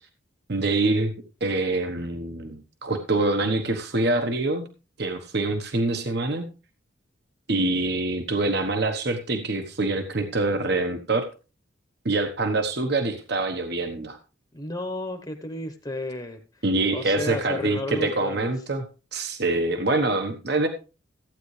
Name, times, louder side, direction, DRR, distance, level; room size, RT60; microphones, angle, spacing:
voice 1, 0.5-1.1 1.4-4.7 5.0-6.5 7.5-11.2 12.0-14.2 16.6-18.9 19.1-20.7, right 2 dB, 55° right, 6 dB, 1.2 m, -25 dB
voice 2, 14.5-16.6 16.9-18.5, left 1 dB, 20° left, 6 dB, 1.0 m, -33 dB
15.0 x 9.2 x 3.3 m, 0.34 s
head